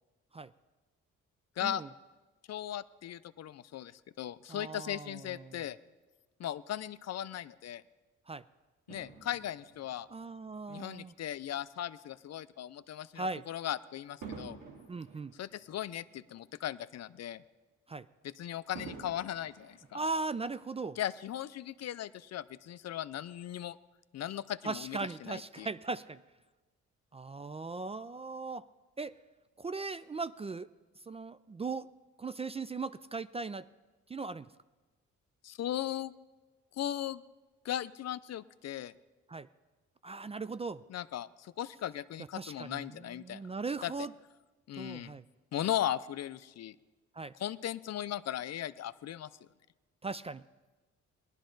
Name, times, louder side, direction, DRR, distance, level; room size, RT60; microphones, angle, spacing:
voice 1, 2.5-5.8 6.4-7.8 8.9-10.1 10.7-14.6 15.3-17.4 18.2-20.0 21.0-23.8 24.1-25.7 35.4-36.1 36.7-37.2 37.6-38.9 40.9-43.4 43.8-43.9 44.7-45.2 45.5-46.8 47.4-49.3, left 11 dB, 55° left, 15 dB, 0.5 m, -38 dB
voice 2, 4.5-5.6 8.3-8.4 10.1-11.1 13.2-13.4 14.9-15.3 17.9-18.1 19.9-21.0 24.6-26.2 27.1-28.7 29.0-29.2 29.6-30.7 31.1-31.9 32.2-33.7 34.1-34.5 39.3-39.5 40.0-40.8 42.3-44.1 44.8-45.2 47.2-47.3 50.0-50.4, right 3 dB, 20° right, 15 dB, 0.3 m, -38 dB
Fireworks, 8.9-11.5 12.1-12.3 14.2-16.7 17.1-17.2 18.7-20.6 21.4-21.5, right 5 dB, 85° right, 2.2 m, -50 dB
18.5 x 11.5 x 3.9 m, 1.2 s
supercardioid pair, 55°, 31 cm